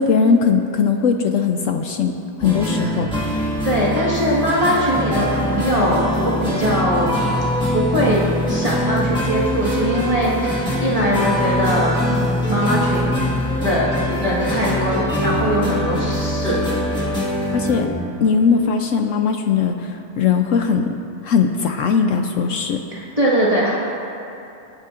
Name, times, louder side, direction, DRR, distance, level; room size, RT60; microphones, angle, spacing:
voice 1, 0.0-2.1 2.4-3.1 17.5-17.9 18.2-21.0 21.2-22.8, left 6 dB, 70° left, 5 dB, 0.9 m, -19 dB
sound 1, 2.4-18.0, equal, 5° left, 1.6 m, -23 dB
voice 2, 3.6-7.1 7.7-13.1 13.6-13.9 14.2-16.6 22.9-23.7, equal, 25° right, -7 dB, 1.5 m, -21 dB
25.5 x 8.5 x 2.5 m, 2.8 s
omnidirectional pair, 1.5 m